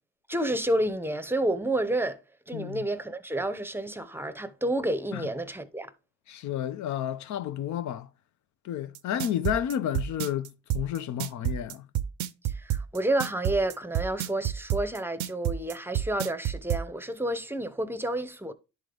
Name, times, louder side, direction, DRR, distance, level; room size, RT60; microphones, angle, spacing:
voice 1, 0.3-2.2 2.5-5.9 12.4-18.5, right 1 dB, 5° right, 0.6 m, -30 dB
voice 2, 2.5-2.8 5.1-5.3 6.3-8.1 8.6-11.9, left 10 dB, 70° left, 0.6 m, -31 dB
sound 1, 8.9-16.8, right 11 dB, 75° right, 0.5 m, -29 dB
10.5 x 3.8 x 3.3 m
cardioid pair, 90°, 30 cm